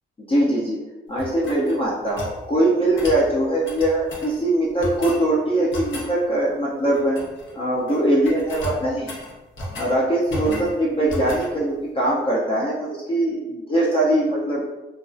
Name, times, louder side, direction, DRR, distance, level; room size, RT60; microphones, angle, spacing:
voice 1, 0.2-0.8 1.1-7.2 7.5-9.2 9.8-14.6, right 1 dB, 25° left, -5 dB, 0.4 m, -21 dB
sound 1, 1.2-2.4 3.0-3.2 3.6-4.3 4.8-5.2 5.7-6.1 6.9-7.5 7.8-9.9 10.3-10.7 11.1-11.5, left 1 dB, 65° left, 0.7 m, -33 dB
2.3 x 2.2 x 2.4 m, 1.1 s
cardioid pair, 95°, 21 cm